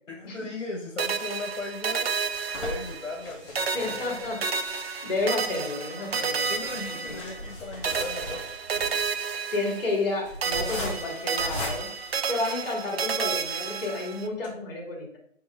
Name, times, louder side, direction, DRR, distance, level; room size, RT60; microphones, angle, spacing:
voice 1, 0.1-2.1 2.5-4.2 6.1-8.4, left 2 dB, 75° left, -1 dB, 1.3 m, -37 dB
sound 1, 1.0-3.3 3.5-7.5 7.8-10.1 10.4-14.3, right 5 dB, 55° right, 0.6 m, -31 dB
sound 2, 1.5-12.9 13.5-13.6 13.8-13.9 14.3-14.5, left 1 dB, 25° left, 1.4 m, -39 dB
voice 2, 3.7-4.4 5.0-6.5 7.1-7.2 9.5-11.9 12.3-15.2, left 2 dB, 45° left, 0 dB, 2.4 m, -31 dB
5.4 x 5.1 x 3.5 m, 0.68 s
figure-of-eight pair, 155°, 38 cm